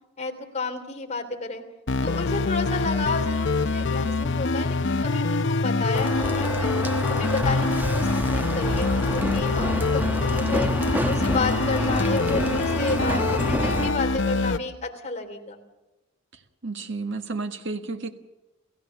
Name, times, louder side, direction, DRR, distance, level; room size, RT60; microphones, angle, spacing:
voice 1, 0.2-1.6 2.0-6.7 7.1-10.7 11.0-15.6, left 3 dB, 30° left, 3 dB, 3.1 m, -31 dB
sound 1, 1.9-14.6, left 3 dB, 55° left, 0.7 m, -25 dB
sound 2, 5.9-13.9, right 1 dB, 10° right, 1.1 m, -29 dB
voice 2, 16.6-18.1, right 3 dB, 60° right, 6 dB, 1.5 m, -31 dB
30.0 x 15.5 x 7.1 m, 1.0 s
head